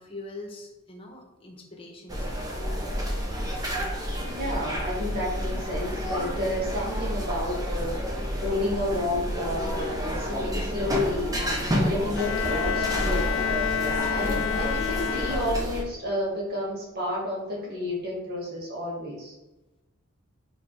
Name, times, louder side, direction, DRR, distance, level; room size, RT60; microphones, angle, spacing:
voice 1, 0.0-2.7, left 2 dB, 25° left, 1 dB, 1.1 m, -44 dB
sound 1, 2.1-15.8, equal, 20° right, 1.0 m, -29 dB
voice 2, 4.2-8.0 8.4-11.3 11.7-13.3 14.0-19.4, left 1 dB, 50° right, -4 dB, 2.2 m, -31 dB
Bowed string instrument, 12.2-15.9, left 8 dB, 70° left, 0.3 m, -29 dB
5.1 x 4.8 x 4.8 m, 1.0 s
head